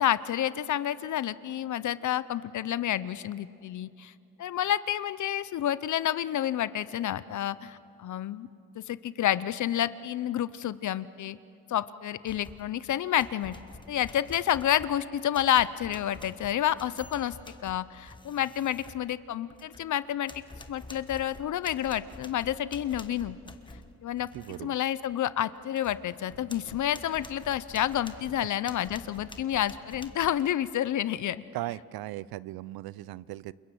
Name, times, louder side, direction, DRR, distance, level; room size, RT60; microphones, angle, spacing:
voice 1, 0.0-4.1 4.4-8.5 8.8-11.4 11.7-13.5 13.9-17.4 17.6-20.3 20.7-23.4 24.0-24.3 24.6-31.4, left 11 dB, 55° left, 16 dB, 0.7 m, -29 dB
sound 1, 12.3-12.8 13.2-19.9 20.3-24.6 25.0-25.2 25.6-30.3, left 2 dB, 15° left, 1.3 m, -48 dB
voice 2, 24.2-24.7 31.5-33.5, right 16 dB, 85° right, 20 dB, 0.6 m, -38 dB
29.0 x 22.0 x 7.7 m, 2.5 s
cardioid pair, 115°, 35 cm